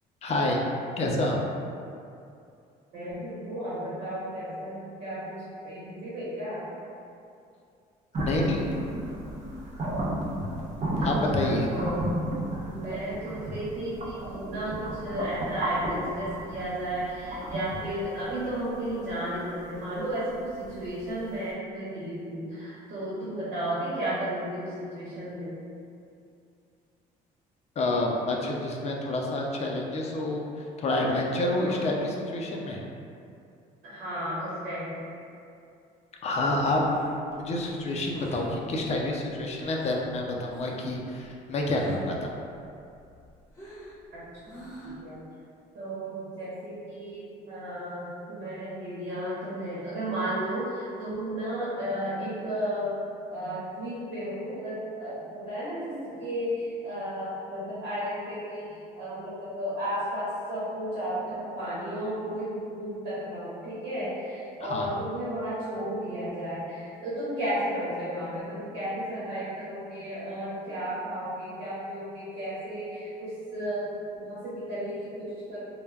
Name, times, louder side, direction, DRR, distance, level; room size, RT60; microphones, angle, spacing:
voice 1, 0.2-0.7 1.0-1.4 8.2-8.7 11.0-11.7 27.8-32.8 36.2-36.8 37.4-42.3 64.6-64.9, left 2 dB, 40° left, 0 dB, 0.4 m, -28 dB
voice 2, 2.9-6.7 11.0-12.2 12.6-25.5 31.5-31.9 33.8-35.1 44.1-44.5 44.8-45.2 45.7-53.0 53.3-75.6, right 1 dB, 75° right, -10 dB, 0.9 m, -33 dB
sound 1, 8.1-21.0, right 1 dB, 40° right, 0.6 m, -33 dB
Breathing, 36.8-40.1 40.5-40.9 41.2-42.2 42.6-45.1, equal, 15° left, 0.8 m, -44 dB
2.2 x 2.1 x 3.2 m, 2.5 s
cardioid pair, 110°, 17 cm